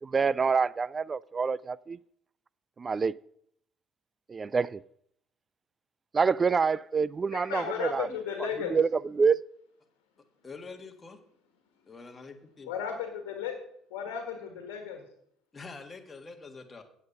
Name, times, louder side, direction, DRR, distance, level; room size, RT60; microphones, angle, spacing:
voice 1, 0.0-2.0 2.8-3.1 4.3-4.8 6.1-8.1 8.7-8.9 9.2-9.4, right 5 dB, 35° right, 0.3 m, -26 dB
voice 2, 7.3-8.7 12.7-13.5 13.9-15.0, left 8 dB, 80° left, 1.4 m, -35 dB
voice 3, 10.4-11.2 11.9-12.7 15.5-16.8, left 4 dB, 30° left, 1.7 m, -45 dB
8.6 x 7.8 x 5.5 m
hypercardioid pair, 65°, 0 cm